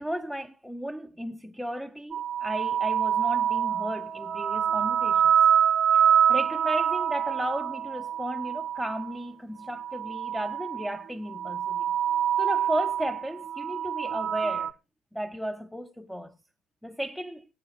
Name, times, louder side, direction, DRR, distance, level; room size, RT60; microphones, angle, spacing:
voice 1, 0.0-5.3 5.9-11.9 12.4-14.7 15.1-16.4 16.8-17.5, equal, ahead, 0.5 m, -34 dB
sound 1, 2.1-9.2 9.7-11.0 11.3-14.7, right 9 dB, 45° right, 0.6 m, -26 dB
16.5 x 8.4 x 2.6 m
hypercardioid pair, 75°, 0 cm